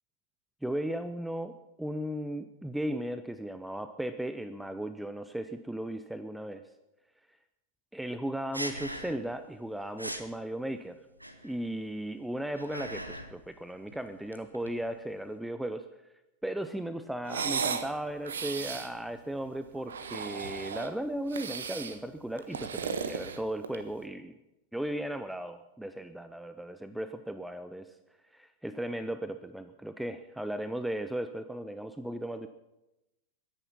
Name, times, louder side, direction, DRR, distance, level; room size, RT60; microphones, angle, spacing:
voice 1, 0.6-6.6 7.9-11.0 11.4-15.9 16.4-24.3 24.7-27.9 28.3-32.5, right 1 dB, 5° right, 10 dB, 0.7 m, -36 dB
sound 1, 8.5-9.4 9.6-9.7 10.0-10.3 11.2-11.7 12.3-13.4 13.7-15.3, right 1 dB, 85° right, 1.2 m, -40 dB
sound 2, 17.2-17.9 18.2-18.9 19.8-20.9 21.3-22.0 22.4-23.9, right 6 dB, 65° right, 1.2 m, -35 dB
22.5 x 10.0 x 5.5 m, 0.96 s
figure-of-eight pair, 90°, 0 cm